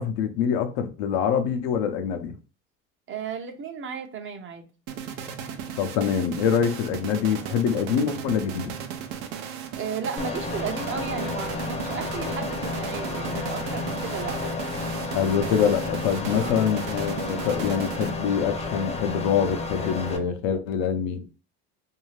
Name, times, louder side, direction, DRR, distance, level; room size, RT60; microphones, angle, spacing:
voice 1, 0.0-2.4 5.8-8.8 15.1-21.2, left 7 dB, 85° left, 0.6 m, -25 dB
voice 2, 3.1-4.7 9.8-15.2 16.4-16.5, right 6 dB, 40° right, 0.7 m, -34 dB
sound 1, 4.9-18.5, right 8 dB, 85° right, 0.6 m, -36 dB
sound 2, 10.2-20.2, left 3 dB, 20° left, 0.6 m, -32 dB
2.7 x 2.4 x 3.1 m
supercardioid pair, 95°, 32 cm